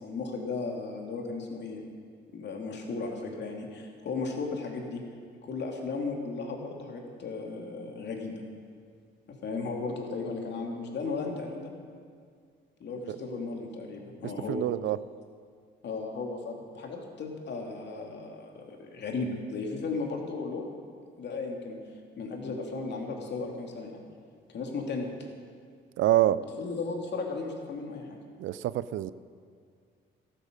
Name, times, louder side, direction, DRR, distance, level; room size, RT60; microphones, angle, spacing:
voice 1, 0.0-1.8 2.3-5.0 5.4-8.4 9.4-11.8 12.8-14.6 15.8-20.6 21.2-21.8 22.2-24.0 24.5-25.1 26.6-28.2, left 4 dB, 60° left, 1 dB, 2.6 m, -35 dB
voice 2, 14.5-15.0 26.0-26.4 28.4-29.1, right 13 dB, 75° right, 17 dB, 0.5 m, -26 dB
13.0 x 12.5 x 6.6 m, 2.1 s
cardioid pair, 90°, 20 cm